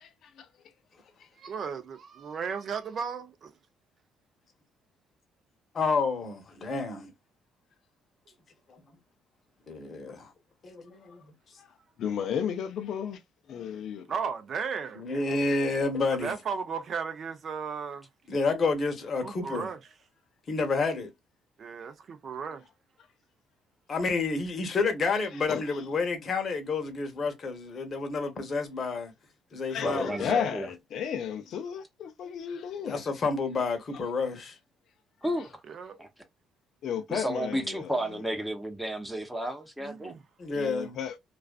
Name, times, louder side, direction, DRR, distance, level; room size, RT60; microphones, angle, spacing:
voice 1, 1.4-3.5 14.1-15.1 16.1-18.1 19.2-19.8 21.6-21.9 22.2-22.6 35.7-36.0 39.8-40.2, right 6 dB, 50° right, 0.5 m, -35 dB
voice 2, 5.7-7.1 8.7-8.8 9.7-10.3 10.6-11.3 15.0-16.3 18.3-19.7 20.5-21.1 23.9-29.1 29.5-30.5 32.8-34.6 40.4-41.0, left 4 dB, 40° left, 0.8 m, -29 dB
voice 3, 12.0-13.2 13.5-14.1 25.1-25.8 29.7-33.0 36.8-38.2 40.5-41.2, left 8 dB, 65° left, 0.4 m, -33 dB
voice 4, 29.8-30.7 35.2-35.6 36.0-36.1 37.1-40.1, right 1 dB, ahead, 0.6 m, -32 dB
2.3 x 2.3 x 2.3 m
cardioid pair, 100°, 0 cm